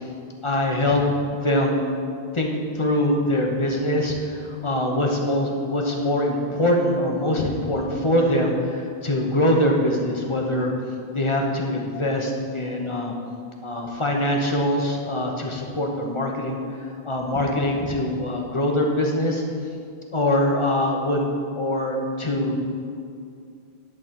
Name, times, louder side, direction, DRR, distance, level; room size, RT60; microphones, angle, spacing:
voice 1, 0.4-1.0 1.4-1.8 2.3-2.5 2.8-10.7 11.1-13.1 13.6-16.6 17.0-19.4 20.1-21.3 21.6-22.6, left 1 dB, 30° left, 1 dB, 1.0 m, -23 dB
11.0 x 4.0 x 7.5 m, 2.4 s
omnidirectional pair, 1.1 m